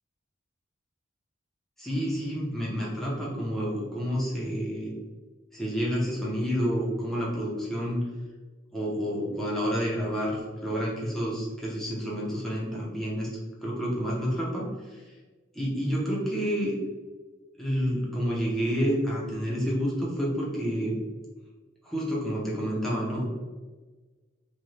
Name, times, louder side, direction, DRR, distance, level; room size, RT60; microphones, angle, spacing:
voice 1, 1.8-4.9 5.5-8.0 8.7-13.3 13.6-15.0 15.5-16.7 17.6-21.0 21.8-23.4, equal, ahead, -6 dB, 0.7 m, -29 dB
2.6 x 2.3 x 3.1 m, 1.3 s
head